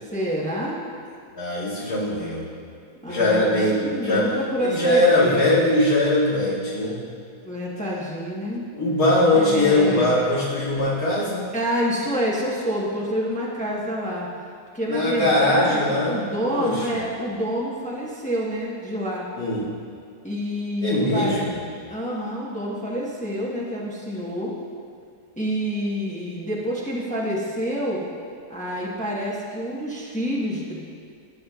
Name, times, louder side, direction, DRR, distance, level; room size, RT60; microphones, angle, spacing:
voice 1, 0.1-0.8 3.0-5.5 7.4-8.6 9.3-10.3 11.5-14.3 14.7-19.3 20.2-21.4 21.9-24.5 25.4-28.0 28.5-30.7, equal, 5° left, -5 dB, 1.1 m, -28 dB
voice 2, 1.4-2.5 3.1-4.3 4.6-7.1 8.7-11.4 14.9-16.2 16.5-17.0 19.3-19.6 20.8-21.6, left 1 dB, 65° left, -12 dB, 2.9 m, -21 dB
15.5 x 7.3 x 2.4 m, 2.3 s
omnidirectional pair, 1.7 m